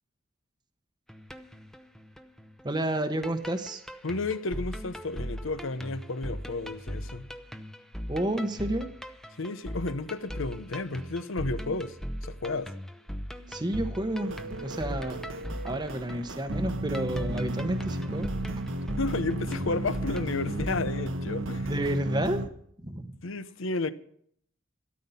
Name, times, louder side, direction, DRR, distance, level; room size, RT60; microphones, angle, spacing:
sound 1, 1.1-20.7, equal, ahead, 0.7 m, -39 dB
voice 1, 2.6-3.8 8.1-8.9 13.5-14.3 14.6-15.2 15.6-18.7 21.6-22.4 22.8-23.2, right 1 dB, 20° right, 0.9 m, -30 dB
voice 2, 4.0-7.3 9.4-12.0 12.2-12.7 19.0-21.8 23.2-23.9, left 3 dB, 80° left, 0.9 m, -32 dB
sound 2, 14.2-22.5, right 1 dB, 75° right, 1.2 m, -34 dB
13.5 x 13.0 x 5.6 m
head